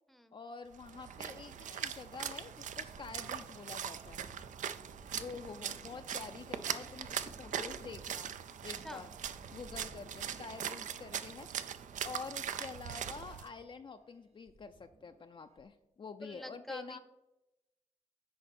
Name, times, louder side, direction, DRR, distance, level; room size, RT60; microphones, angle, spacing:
voice 1, 0.3-4.2 5.2-8.3 8.6-9.1 9.5-11.5 12.0-17.0, left 5 dB, 40° left, 7 dB, 0.4 m, -47 dB
Splash splatter, 0.7-13.5, right 8 dB, 80° right, 0.4 m, -41 dB
sound 1, 2.9-11.1 13.0-14.2 14.5-15.6, right 3 dB, 55° right, 0.8 m, -58 dB
sound 2, 5.1-14.0 14.3-14.4, left 5 dB, 75° left, 0.8 m, -62 dB
voice 2, 16.2-17.0, equal, ahead, 10 dB, 0.7 m, -48 dB
10.0 x 4.0 x 4.3 m, 0.96 s
cardioid pair, 70°, 13 cm